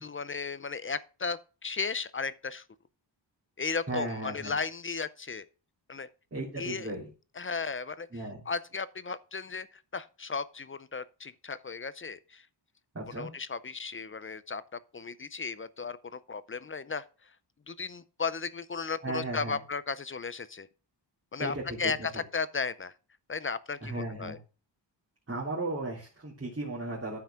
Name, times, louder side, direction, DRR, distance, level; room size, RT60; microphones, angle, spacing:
voice 1, 0.0-2.6 3.6-5.5 5.9-6.1 6.6-6.9 7.4-8.1 8.5-12.5 13.2-17.3 17.7-20.7 21.3-22.9 23.3-24.4, left 5 dB, 30° left, 0.5 m, -35 dB
voice 2, 3.9-4.5 6.3-7.1 8.1-8.4 12.9-13.3 19.0-19.6 21.4-21.9 23.8-24.4 25.3-27.2, right 2 dB, 30° right, 3.5 m, -35 dB
13.5 x 5.8 x 3.6 m
wide cardioid pair, 170°, 44 cm